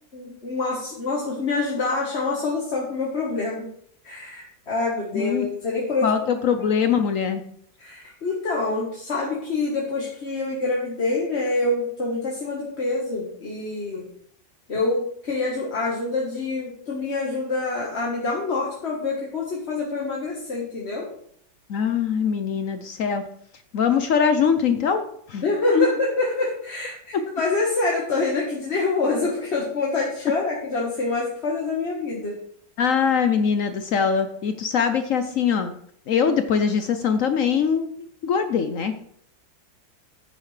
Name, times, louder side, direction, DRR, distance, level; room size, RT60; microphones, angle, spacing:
voice 1, 0.1-3.7 4.0-6.1 7.8-14.0 14.7-21.1 25.4-32.4, left 3 dB, 35° left, -3 dB, 1.6 m, -26 dB
voice 2, 5.1-5.5 6.0-7.4 21.7-23.2 23.7-25.9 32.8-35.7 36.1-37.9 38.2-38.9, left 6 dB, 65° left, 9 dB, 0.8 m, -22 dB
9.7 x 9.2 x 3.3 m, 0.66 s
omnidirectional pair, 2.1 m